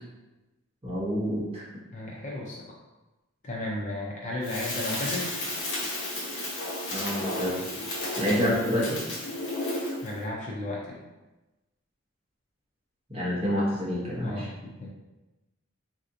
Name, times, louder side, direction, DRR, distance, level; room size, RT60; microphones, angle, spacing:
voice 1, 0.8-1.7 6.9-7.6 8.2-9.0 13.1-14.5, equal, 25° right, -7 dB, 0.9 m, -28 dB
voice 2, 1.9-2.7 3.4-5.3 10.0-11.0 14.2-14.9, left 1 dB, 35° left, -3 dB, 0.5 m, -34 dB
Crackle, 4.4-10.1, left 1 dB, 55° left, 1.0 m, -33 dB
3.3 x 2.7 x 2.6 m, 1.1 s
head